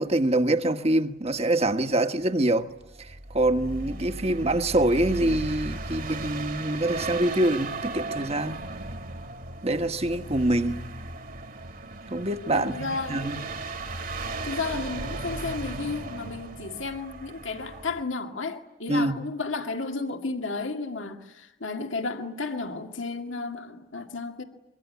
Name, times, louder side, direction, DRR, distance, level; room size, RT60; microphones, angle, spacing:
voice 1, 0.0-2.7 3.0-8.6 9.6-10.8 12.1-13.4 18.9-19.1, right 1 dB, 35° right, 1.3 m, -25 dB
sound 1, 2.8-18.0, right 2 dB, 50° right, 2.0 m, -36 dB
voice 2, 12.5-13.5 14.4-24.4, left 3 dB, 90° left, 2.1 m, -33 dB
25.5 x 24.0 x 9.5 m
head